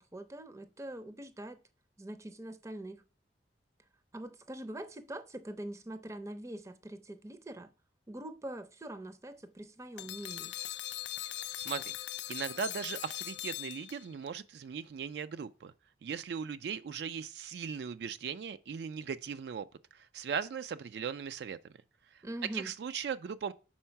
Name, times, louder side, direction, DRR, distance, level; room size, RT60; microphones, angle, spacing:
voice 1, 0.0-1.6 2.0-3.0 4.1-7.7 8.1-10.5 22.2-22.7, right 1 dB, 15° right, 0.5 m, -43 dB
sound 1, 10.0-14.3, left 14 dB, 85° left, 0.4 m, -40 dB
voice 2, 11.6-11.9 12.3-15.7 16.0-19.7 19.9-21.6 22.5-23.5, right 6 dB, 65° right, 0.3 m, -38 dB
4.5 x 4.3 x 5.7 m
head